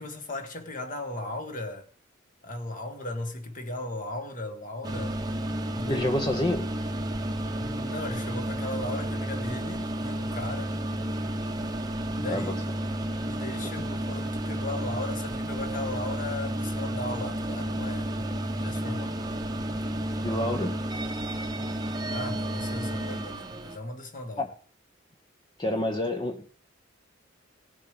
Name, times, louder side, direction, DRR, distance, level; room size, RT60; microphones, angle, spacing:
voice 1, 0.0-1.9 2.4-5.2 5.7-6.1 7.5-10.8 12.2-12.6 13.3-18.2 18.6-19.2 22.1-24.4, left 2 dB, 40° left, 2.0 m, -36 dB
sound 1, 4.8-23.8, right 1 dB, 20° right, 1.0 m, -32 dB
voice 2, 5.9-6.7 12.3-12.6 13.6-13.9 20.2-20.7 24.4-24.5 25.6-26.5, left 1 dB, 20° left, 0.9 m, -28 dB
18.0 x 7.3 x 5.2 m
head